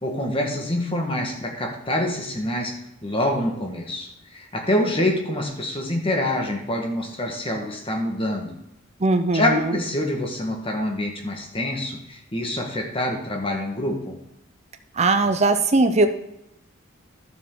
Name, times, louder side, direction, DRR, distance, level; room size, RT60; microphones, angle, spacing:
voice 1, 0.0-8.6 9.3-14.2, left 1 dB, 25° left, 2 dB, 1.6 m, -26 dB
voice 2, 9.0-9.8 15.0-16.1, right 2 dB, 35° right, 7 dB, 0.8 m, -19 dB
12.0 x 7.1 x 3.9 m, 0.84 s
head